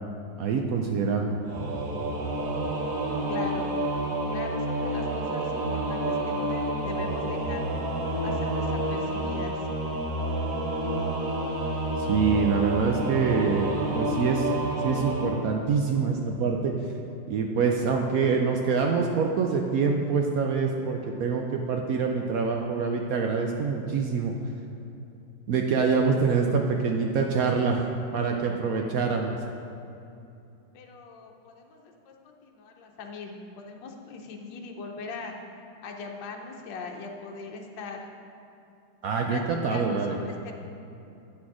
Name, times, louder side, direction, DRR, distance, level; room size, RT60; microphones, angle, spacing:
voice 1, 0.4-1.4 12.0-14.5 14.8-16.7 17.3-24.3 25.5-27.8 28.1-29.4 39.0-40.2, right 5 dB, 75° right, 2 dB, 0.8 m, -25 dB
Singing / Musical instrument, 1.4-15.3, right 1 dB, 55° right, 1.4 m, -29 dB
voice 2, 3.3-3.7 4.3-7.6 8.2-9.6 30.7-35.3 35.8-38.0 39.3-39.4 39.7-40.5, left 4 dB, 75° left, 1 dB, 1.4 m, -40 dB
8.7 x 6.1 x 4.8 m, 2.8 s
omnidirectional pair, 2.0 m